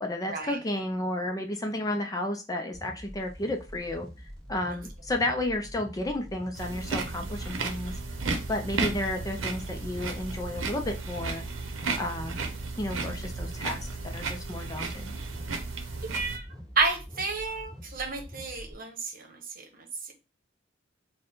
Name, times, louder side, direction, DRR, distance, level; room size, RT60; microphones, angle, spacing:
voice 1, 0.0-4.1 4.5-8.0 8.5-11.4 12.0-12.4 12.8-13.8 14.0-15.2, left 1 dB, 20° left, 4 dB, 0.4 m, -32 dB
sound 1, 2.7-18.7, equal, 5° left, 1.9 m, -45 dB
sound 2, 6.6-16.4, right 3 dB, 90° right, 0.7 m, -34 dB
voice 2, 16.1-16.4 16.8-19.4 19.7-20.1, right 4 dB, 45° right, 3 dB, 1.0 m, -31 dB
4.3 x 2.2 x 3.8 m, 0.29 s
head